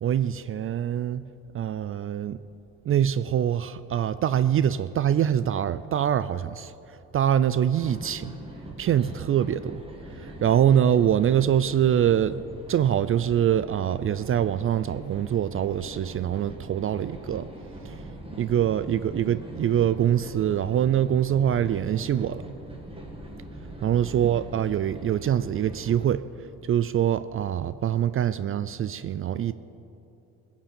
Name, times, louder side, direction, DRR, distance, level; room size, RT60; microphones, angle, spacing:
voice 1, 0.0-1.2 1.5-2.4 2.9-6.7 7.1-8.3 8.8-9.8 10.4-12.4 12.7-17.5 18.4-22.4 23.8-26.2 26.7-29.5, right 10 dB, 45° right, 15 dB, 0.4 m, -24 dB
sound 1, 7.7-26.1, right 1 dB, 20° right, 2.0 m, -42 dB
16.5 x 7.3 x 7.6 m, 2.9 s
cardioid pair, 90°, 30 cm